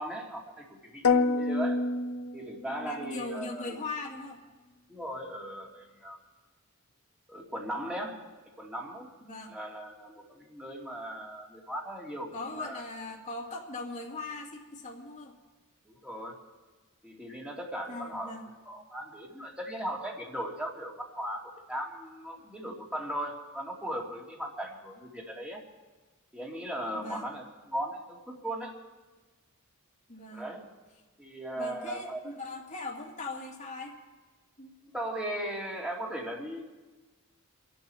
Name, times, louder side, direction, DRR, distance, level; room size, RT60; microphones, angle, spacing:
voice 1, 0.0-1.8 2.3-3.8 4.9-6.2 7.3-8.3 8.6-9.1 9.5-12.8 15.9-16.4 17.0-18.4 18.7-25.6 26.3-28.8 30.3-30.7 31.2-32.2 34.8-36.6, right 1 dB, 5° right, -1 dB, 2.5 m, -38 dB
sound 1, 1.0-3.0, left 4 dB, 85° left, 0.7 m, -27 dB
voice 2, 2.8-4.4 9.2-9.6 12.3-15.3 17.9-18.5 26.9-27.3 30.1-30.5 31.6-33.9 34.6-34.7, left 2 dB, 35° left, -2 dB, 2.6 m, -40 dB
26.0 x 11.5 x 4.5 m, 1.2 s
head